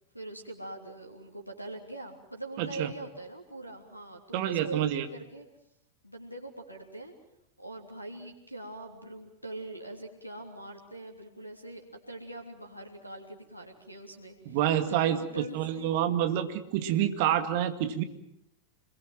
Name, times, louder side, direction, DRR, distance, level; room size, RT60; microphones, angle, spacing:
voice 1, 0.1-5.5 6.0-7.1 7.6-14.6 14.9-15.9, right 2 dB, 90° left, 4 dB, 3.3 m, -43 dB
voice 2, 2.6-2.9 4.3-5.1 14.5-18.0, right 11 dB, 50° right, 9 dB, 2.1 m, -28 dB
27.0 x 21.5 x 7.6 m, 0.80 s
figure-of-eight pair, 90°, 0 cm